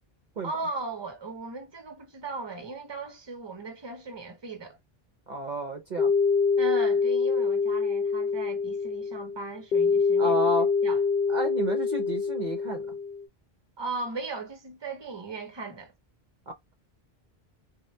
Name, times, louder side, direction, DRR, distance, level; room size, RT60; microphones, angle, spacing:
voice 1, 0.4-4.8 6.6-10.4 10.8-11.0 13.8-15.9, right 3 dB, 25° right, 0.9 m, -37 dB
voice 2, 5.3-6.1 10.2-10.7 11.3-12.9, right 2 dB, 50° right, 0.8 m, -31 dB
sound 1, 6.0-13.2, left 5 dB, 65° left, 0.7 m, -25 dB
3.9 x 2.1 x 3.2 m
omnidirectional pair, 1.1 m